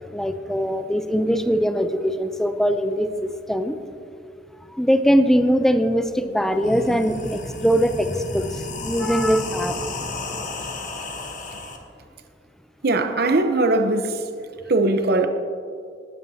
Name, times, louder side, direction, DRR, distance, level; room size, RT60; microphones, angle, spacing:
voice 1, 0.1-3.8 4.8-8.1 8.3-8.5 8.8-9.8, equal, ahead, 0.5 m, -21 dB
sound 1, 6.1-6.2 6.5-11.8, left 2 dB, 45° left, 1.1 m, -32 dB
voice 2, 12.8-14.2 14.7-15.3, right 2 dB, 55° right, 0.8 m, -20 dB
18.5 x 9.7 x 2.8 m
head